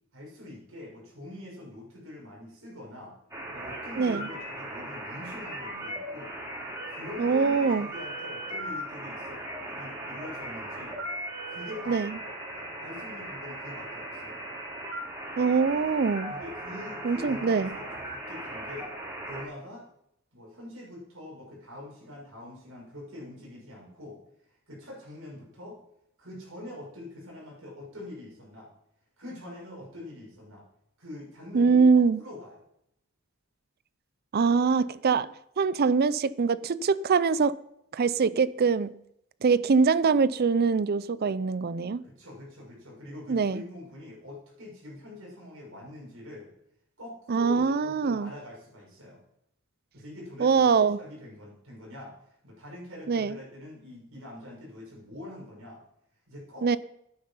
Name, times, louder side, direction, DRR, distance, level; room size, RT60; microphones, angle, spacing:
voice 1, 0.1-3.2 3.5-6.4 6.9-11.0 11.5-14.4 16.3-18.9 19.2-19.8 20.3-24.2 24.7-25.8 26.2-28.7 29.2-30.6 31.0-32.6 42.0-46.5 47.0-49.2 49.9-52.1 52.4-55.8 56.3-56.7, left 1 dB, 75° right, 6.4 m, -44 dB
sound 1, 3.3-19.4, right 1 dB, 20° right, 5.7 m, -38 dB
voice 2, 4.0-4.3 7.2-7.9 11.9-12.1 15.4-16.3 17.0-17.7 31.5-32.2 34.3-35.3 35.6-37.6 37.9-38.9 39.4-42.0 43.3-43.6 47.3-48.3 50.4-51.0 53.1-53.4 56.6-56.8, right 5 dB, 50° right, 0.5 m, -23 dB
12.0 x 10.5 x 5.6 m
head